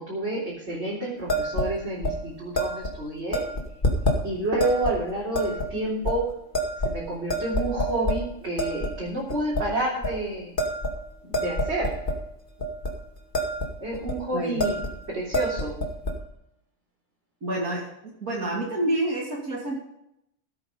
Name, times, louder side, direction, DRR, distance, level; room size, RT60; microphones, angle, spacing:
voice 1, 0.0-3.4 4.2-6.4 6.8-10.6 11.3-12.0 13.8-14.8 15.1-15.8, right 1 dB, 50° right, -7 dB, 3.9 m, -29 dB
sound 1, 1.3-1.7 2.0-2.2 2.5-2.9 3.3-4.2 4.6-4.9 5.3-5.7 6.0-6.1 6.5-7.0 7.3-8.2 8.6-8.9 9.3-9.6 10.0-10.2 10.6-12.2 12.6-12.9 13.2-13.7 13.9-14.2 14.6-14.9 15.2-16.1, equal, 35° left, 2.4 m, -27 dB
voice 2, 14.3-14.6 17.4-17.8 18.2-19.8, right 1 dB, 80° right, -4 dB, 3.2 m, -28 dB
15.5 x 8.8 x 5.1 m, 0.77 s
omnidirectional pair, 1.5 m